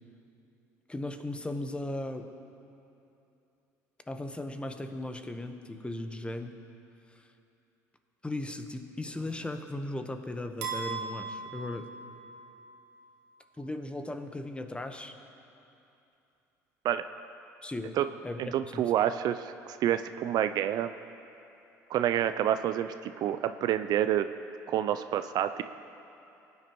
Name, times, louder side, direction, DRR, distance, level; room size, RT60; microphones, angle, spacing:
voice 1, 0.9-2.3 4.1-6.5 8.2-11.8 13.6-15.1 17.6-18.0 18.2-18.4 18.7-18.8, left 2 dB, 15° left, 7 dB, 1.1 m, -37 dB
sound 1, 10.6-12.7, right 5 dB, 85° right, 1.3 m, -38 dB
voice 2, 18.4-20.9 21.9-24.3 24.7-25.6, right 11 dB, 55° right, 11 dB, 0.4 m, -28 dB
21.0 x 9.3 x 3.1 m, 2.8 s
hypercardioid pair, 65°, 8 cm